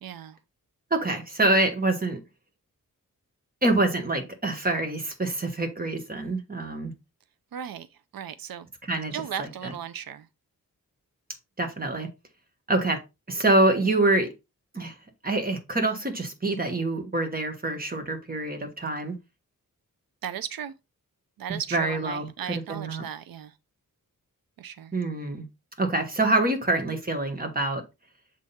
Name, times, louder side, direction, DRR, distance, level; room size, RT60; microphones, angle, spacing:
voice 1, 0.0-0.4 7.5-7.9 8.1-8.7 9.1-10.3 20.2-20.7 21.4-23.5 24.6-24.9, right 9 dB, 90° right, 0.6 m, -36 dB
voice 2, 0.9-2.2 3.6-6.9 8.9-9.7 11.6-12.1 12.7-13.0 13.3-14.3 14.7-14.9 15.2-19.2 21.5-23.0 24.9-25.4 25.8-27.8, right 2 dB, 25° right, 1.4 m, -26 dB
7.4 x 3.6 x 4.1 m
wide cardioid pair, 160°, 34 cm